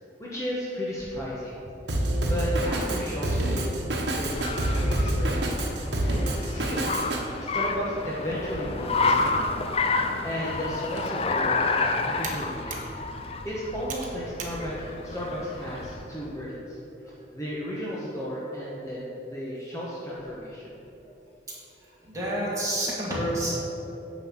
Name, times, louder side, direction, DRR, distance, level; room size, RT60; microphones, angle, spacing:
voice 1, 0.2-1.6 2.0-3.7 4.1-5.5 6.0-6.9 7.4-9.6 9.9-12.8 13.1-16.8 17.3-20.7, equal, 15° left, -7 dB, 1.1 m, -34 dB
Drum kit, 1.9-7.2, right 1 dB, 70° right, 1.2 m, -27 dB
Car, 3.9-16.1, left 3 dB, 30° left, 0.4 m, -30 dB
Computer keyboard, 10.8-15.9, right 4 dB, 45° right, 1.1 m, -43 dB
voice 2, 22.0-23.6, right 1 dB, 15° right, -7 dB, 2.2 m, -28 dB
9.5 x 4.1 x 7.3 m, 3.0 s
head